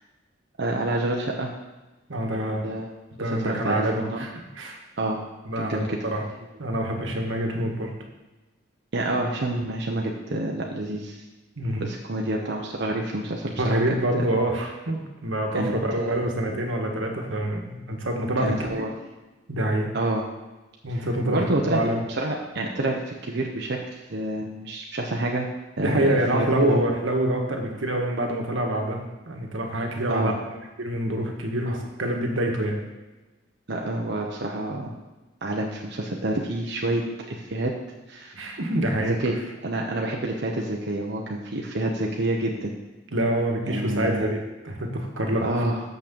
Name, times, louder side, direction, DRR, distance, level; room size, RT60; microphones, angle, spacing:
voice 1, 0.6-1.5 2.6-2.9 3.2-4.3 5.0-5.2 5.6-6.0 8.9-11.2 11.8-13.8 14.2-14.3 15.5-16.2 18.4-18.9 19.9-20.2 20.9-21.8 22.2-23.8 24.1-25.5 25.8-26.8 30.1-30.3 31.7-31.8 33.7-34.9 35.4-37.7 38.1-38.3 39.0-39.4 39.6-42.7 43.7-44.3 45.4-45.8, right 1 dB, 60° right, 0 dB, 0.9 m, -28 dB
voice 2, 2.1-2.7 3.2-4.8 5.5-6.2 6.6-7.9 11.6-11.8 13.6-18.7 19.5-19.9 20.8-22.0 25.8-30.3 30.8-32.8 38.3-39.1 43.1-45.4, right 1 dB, 85° right, 2 dB, 1.5 m, -26 dB
6.7 x 6.1 x 6.9 m, 1.1 s
head